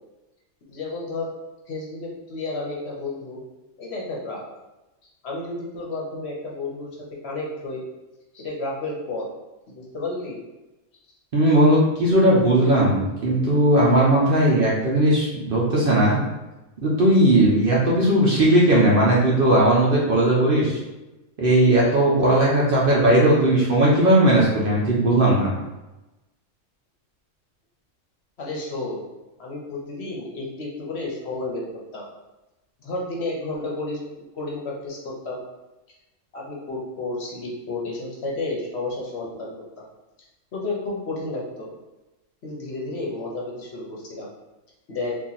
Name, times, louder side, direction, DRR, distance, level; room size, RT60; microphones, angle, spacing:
voice 1, 0.7-1.3 1.7-3.4 3.8-4.4 5.2-6.9 7.2-7.8 8.3-9.3 9.7-10.4 28.4-29.0 29.4-31.7 31.9-32.1 32.8-34.0 34.3-35.4 36.3-39.9 40.5-41.7 42.4-44.3 44.9-45.1, left 2 dB, 60° left, -3 dB, 0.9 m, -31 dB
voice 2, 11.3-16.2 16.8-20.8 21.4-25.5, right 1 dB, 50° right, -6 dB, 0.8 m, -18 dB
2.9 x 2.5 x 3.9 m, 1.0 s
omnidirectional pair, 1.4 m